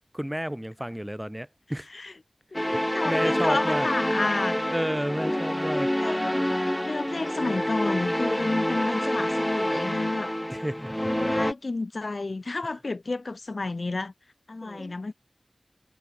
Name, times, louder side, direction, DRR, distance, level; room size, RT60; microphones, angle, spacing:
voice 1, 0.1-1.9 3.0-3.9 4.7-5.9 10.5-10.9 14.6-14.9, equal, 10° right, 4.8 m, -31 dB
voice 2, 2.5-4.6 5.2-5.4 6.0-6.4 6.8-10.3 11.0-14.1 14.5-15.1, left 3 dB, 65° left, 6.4 m, -31 dB
sound 1, 2.5-11.5, equal, 10° left, 4.3 m, -27 dB
wide cardioid pair, 45°, 0 cm